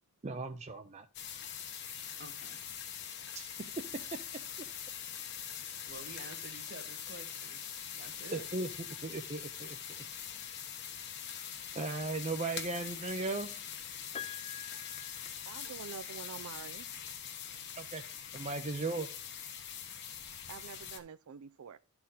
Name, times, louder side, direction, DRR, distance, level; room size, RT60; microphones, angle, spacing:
voice 1, 0.2-1.1 3.3-3.5 3.9-4.2 8.3-8.7 9.0-10.0 11.7-13.6 17.8-18.0 18.3-19.2, right 3 dB, 30° right, 0.5 m, -37 dB
sound 1, 1.1-21.0, left 8 dB, 50° left, 1.2 m, -43 dB
voice 2, 2.1-2.6 5.8-7.6 7.9-8.5, right 3 dB, 50° right, 1.6 m, -50 dB
Piano, 14.1-16.1 17.4-17.5, left 9 dB, 25° left, 0.5 m, -47 dB
voice 3, 15.5-16.9 20.5-21.8, right 7 dB, 80° right, 0.4 m, -47 dB
12.5 x 4.3 x 3.9 m
head